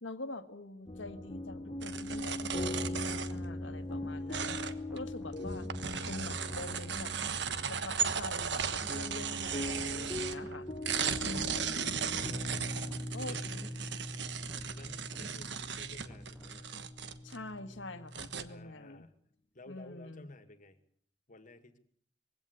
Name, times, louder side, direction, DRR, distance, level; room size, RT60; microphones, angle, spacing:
voice 1, 0.0-4.6 4.9-5.7 6.1-7.1 7.7-10.7 11.2-12.0 13.1-13.9 17.2-19.1 19.7-20.3, left 2 dB, 85° left, 10 dB, 1.7 m, -45 dB
sound 1, 0.9-18.7, left 1 dB, 25° left, 1.6 m, -41 dB
sound 2, 1.8-3.5 4.3-5.0 5.4-10.6 10.8-17.4 17.8-17.9 18.1-18.4, right 7 dB, 65° right, 1.3 m, -36 dB
sound 3, 2.3-2.5 3.1-4.1 4.7-5.7 6.3-7.3 7.9-8.9 9.5-10.5 11.1-12.1 12.7-13.7 14.3-15.3 15.9-16.6, right 1 dB, 10° right, 1.6 m, -55 dB
voice 2, 13.2-13.8 14.7-16.7 18.4-19.1 19.5-20.8 21.3-21.8, left 2 dB, 45° left, 10 dB, 2.1 m, -53 dB
22.0 x 16.5 x 8.2 m, 0.63 s
head